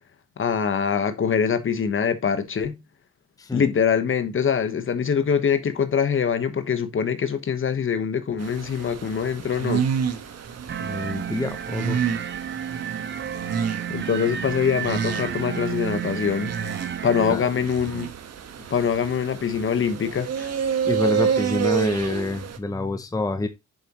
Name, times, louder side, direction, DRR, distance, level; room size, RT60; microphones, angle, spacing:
voice 1, 0.4-2.8 3.5-9.8 13.9-16.5 17.0-18.1 18.7-20.5, left 7 dB, 45° left, 1.3 m, -24 dB
sound 1, 8.4-22.6, right 7 dB, 55° right, 1.5 m, -29 dB
sound 2, 10.7-17.4, right 9 dB, 40° right, 0.8 m, -31 dB
voice 2, 10.8-12.0 17.3-17.5 20.8-23.5, left 2 dB, 10° left, 0.9 m, -27 dB
7.9 x 6.9 x 3.0 m
cardioid pair, 90°, 30 cm